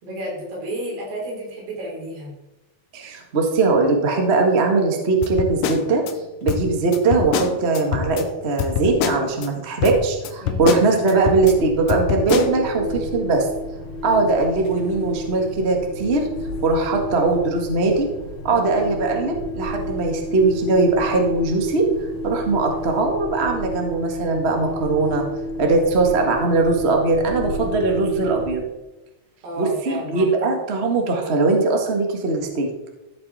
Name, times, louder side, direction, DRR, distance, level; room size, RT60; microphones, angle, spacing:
voice 1, 0.0-2.3 10.4-10.8 18.5-18.7 29.4-30.3, right 1 dB, 90° right, -4 dB, 6.1 m, -32 dB
voice 2, 2.9-6.0 6.4-13.5 14.0-16.3 16.6-18.1 18.4-21.9 22.2-25.2 25.6-28.6 29.6-32.7, right 3 dB, 40° right, 2 dB, 0.9 m, -20 dB
sound 1, 5.2-6.1 6.5-8.3 8.6-9.5 9.8-11.5 11.9-12.5, left 8 dB, 75° left, 2.3 m, -25 dB
sound 2, 11.1-28.5, left 1 dB, 50° left, 5.4 m, -31 dB
15.0 x 7.9 x 4.2 m, 1.0 s
omnidirectional pair, 4.4 m